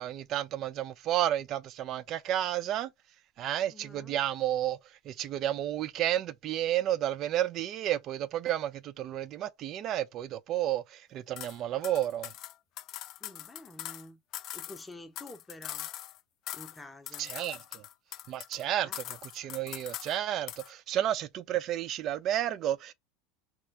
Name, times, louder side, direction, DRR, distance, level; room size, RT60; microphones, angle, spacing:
voice 1, 0.0-2.9 3.4-12.3 17.2-17.8 18.3-22.9, right 12 dB, 45° right, 0.4 m, -31 dB
voice 2, 3.6-4.2 13.2-14.2 14.5-15.9 16.5-17.3 18.8-19.0, left 2 dB, 10° left, 0.7 m, -49 dB
sound 1, 11.4-11.6 11.8-14.0 14.3-16.2 16.5-16.8 17.1-18.6 18.9-20.2 20.5-20.7, left 13 dB, 50° left, 0.3 m, -42 dB
3.3 x 3.0 x 3.4 m
figure-of-eight pair, 75°, 0 cm